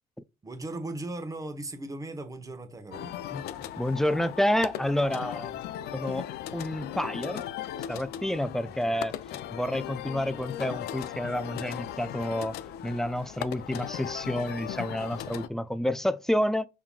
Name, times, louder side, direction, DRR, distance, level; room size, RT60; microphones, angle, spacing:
voice 1, 0.4-3.2, right 2 dB, 20° right, 1.0 m, -37 dB
sound 1, 2.9-15.5, left 11 dB, 75° left, 0.5 m, -38 dB
voice 2, 3.8-5.5 5.9-6.3 6.5-7.4 7.9-9.1 9.5-12.5 12.8-16.7, left 1 dB, ahead, 0.4 m, -29 dB
5.6 x 3.6 x 2.4 m
cardioid pair, 110°, 17 cm